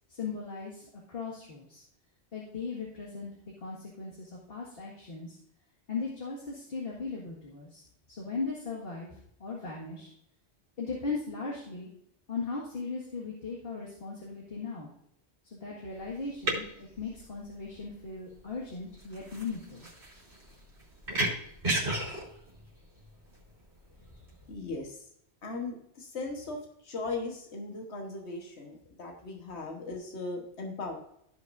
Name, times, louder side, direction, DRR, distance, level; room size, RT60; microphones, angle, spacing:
voice 1, 0.1-1.8 2.3-3.3 3.6-5.4 5.9-10.1 10.8-11.9 12.3-14.9 15.4-19.9, left 4 dB, 60° left, -4 dB, 2.1 m, -38 dB
sound 1, 15.9-24.4, right 1 dB, 75° right, 4.0 m, -35 dB
voice 2, 24.5-25.1 25.4-31.0, left 3 dB, 85° left, 1 dB, 1.6 m, -38 dB
16.0 x 6.2 x 2.6 m, 0.73 s
omnidirectional pair, 1.1 m